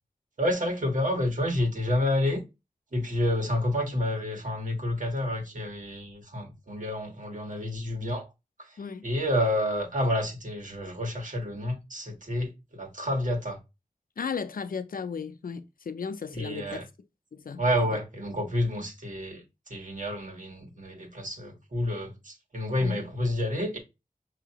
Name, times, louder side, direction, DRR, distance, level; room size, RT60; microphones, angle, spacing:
voice 1, 0.4-2.4 2.9-8.3 8.6-13.6 16.3-16.8 17.6-23.8, left 1 dB, 65° right, 1.5 m, -29 dB
voice 2, 14.2-16.9 17.3-17.6 17.9-18.0 22.8-23.0, left 6 dB, 90° left, 0.5 m, -35 dB
5.8 x 2.8 x 2.8 m
wide cardioid pair, 65°, 14 cm